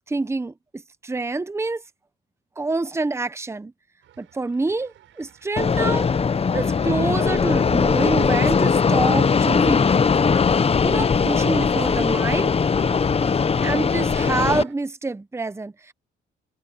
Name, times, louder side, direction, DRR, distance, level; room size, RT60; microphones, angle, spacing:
voice 1, 0.1-0.5 1.0-1.8 2.6-3.7 4.2-6.1 6.5-9.9 10.8-12.5 13.6-15.9, right 3 dB, 15° right, 0.9 m, -26 dB
sound 1, 4.0-14.7, right 11 dB, 75° right, 6.1 m, -50 dB
Fixed-wing aircraft airplane, 5.6-14.6, left 5 dB, 30° left, 0.8 m, -20 dB
cardioid pair, 90°, 20 cm